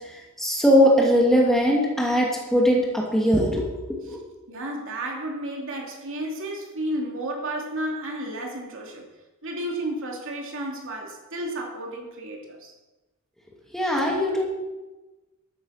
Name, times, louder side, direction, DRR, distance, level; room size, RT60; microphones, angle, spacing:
voice 1, 0.1-3.7 4.1-4.2 13.7-14.4, equal, ahead, -2 dB, 2.5 m, -20 dB
voice 2, 4.5-9.0 9.4-12.7, right 1 dB, 60° right, 0 dB, 2.9 m, -32 dB
13.0 x 9.4 x 5.8 m, 1.1 s
head